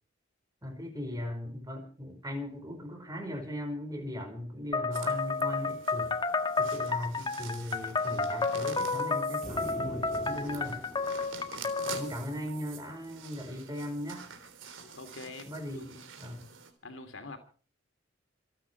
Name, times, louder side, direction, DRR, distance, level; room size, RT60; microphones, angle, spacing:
voice 1, 0.6-6.1 6.6-10.8 11.9-14.3 15.5-16.5, left 1 dB, 20° right, 4 dB, 5.2 m, -38 dB
sound 1, 4.7-12.1, left 4 dB, 25° left, 1.5 m, -31 dB
sound 2, 4.9-16.7, right 6 dB, 75° right, 3.5 m, -47 dB
sound 3, 9.4-12.8, equal, 5° left, 5.9 m, -45 dB
voice 2, 14.8-15.9 16.8-17.4, left 3 dB, 75° left, 7 dB, 2.8 m, -45 dB
28.0 x 9.3 x 4.6 m, 0.41 s
head